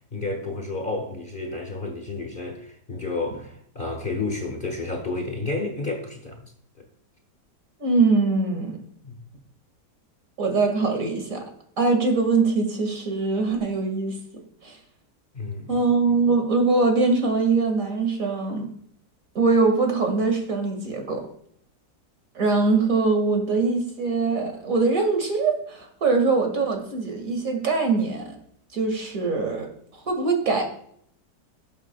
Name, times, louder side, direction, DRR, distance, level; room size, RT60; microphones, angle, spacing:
voice 1, 0.1-6.5 6.8-6.9 9.0-9.2 15.3-15.8, left 3 dB, 30° left, 1.5 m, -31 dB
voice 2, 7.8-8.8 10.4-11.4 11.8-14.2 14.6-14.8 15.7-18.7 19.4-21.2 22.4-28.4 28.7-29.7 30.1-30.6, right 3 dB, 50° right, 2.2 m, -22 dB
17.0 x 7.3 x 2.2 m
omnidirectional pair, 1.8 m